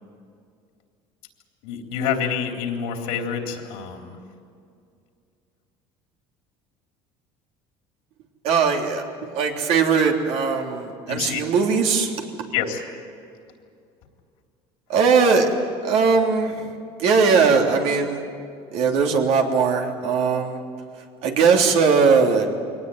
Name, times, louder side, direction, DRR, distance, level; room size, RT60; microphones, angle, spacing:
voice 1, 1.6-4.2 11.1-11.5 12.5-12.8, left 7 dB, 85° left, 3 dB, 3.5 m, -27 dB
voice 2, 8.4-9.0 9.3-12.1 14.9-15.5 15.8-16.7 17.0-18.2 18.7-20.6 21.2-22.5, right 5 dB, 70° right, 2 dB, 3.3 m, -19 dB
22.5 x 19.0 x 9.4 m, 2.4 s
cardioid pair, 115°, 11 cm